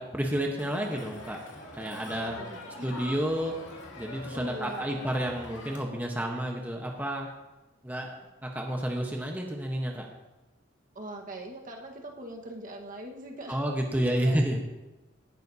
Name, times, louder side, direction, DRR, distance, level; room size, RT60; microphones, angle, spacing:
voice 1, 0.0-1.4 1.7-2.4 2.8-3.7 3.9-7.3 7.8-10.1 13.5-14.6, right 1 dB, 10° right, 0 dB, 1.1 m, -30 dB
Crowd, 0.6-5.8, left 2 dB, 80° left, 2.4 m, -44 dB
voice 2, 2.1-3.0 4.3-5.0 10.9-13.6 13.9-14.3, equal, 45° right, 1 dB, 1.5 m, -41 dB
17.5 x 11.5 x 2.8 m, 1.1 s
head